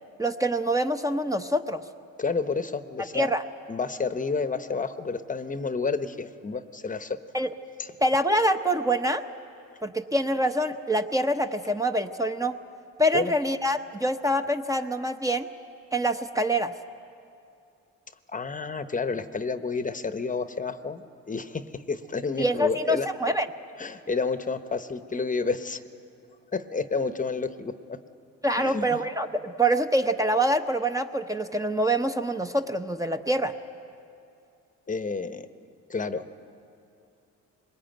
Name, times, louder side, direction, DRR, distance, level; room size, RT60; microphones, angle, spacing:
voice 1, 0.2-1.8 3.1-3.4 7.3-7.5 8.0-9.2 9.8-12.6 13.0-15.5 15.9-16.7 22.4-23.5 28.4-33.5, right 1 dB, 10° right, 7 dB, 0.8 m, -25 dB
voice 2, 2.2-3.3 3.7-7.2 7.8-7.9 13.1-13.3 18.3-23.1 23.8-25.8 26.5-28.0 28.6-29.0 34.9-35.5 35.9-36.2, left 4 dB, 25° left, 11 dB, 0.9 m, -30 dB
22.0 x 20.0 x 9.1 m, 2.6 s
cardioid pair, 90°, 30 cm